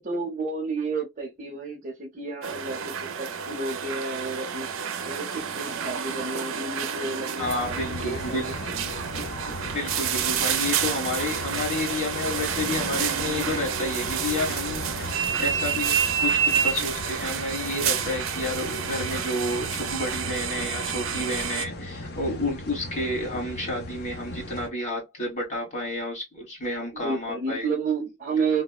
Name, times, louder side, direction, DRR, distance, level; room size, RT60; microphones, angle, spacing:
voice 1, 0.0-4.7 5.0-9.0 27.0-28.6, right 4 dB, 40° right, 0.7 m, -31 dB
sound 1, 2.4-21.7, right 8 dB, 90° right, 0.5 m, -29 dB
sound 2, 7.4-24.7, left 1 dB, 50° left, 0.6 m, -38 dB
voice 2, 7.4-8.5 9.7-27.7, left 2 dB, 35° left, 1.5 m, -30 dB
3.5 x 2.1 x 2.2 m
head